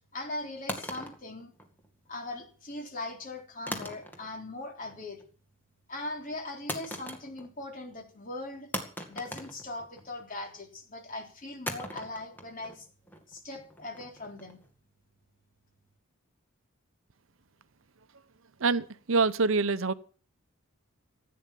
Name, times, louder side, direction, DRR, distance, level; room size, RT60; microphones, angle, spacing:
voice 1, 0.1-1.5 2.1-5.2 5.9-8.7 9.1-12.9 13.3-14.6, left 2 dB, 40° left, 3.7 m, -40 dB
sound 1, 0.7-2.1 3.7-4.5 4.8-5.3 6.7-7.6 7.9-8.0 8.7-10.3 11.7-14.7, equal, 10° left, 2.0 m, -40 dB
voice 2, 18.6-19.9, right 4 dB, 65° right, 0.8 m, -25 dB
15.5 x 9.4 x 7.5 m
head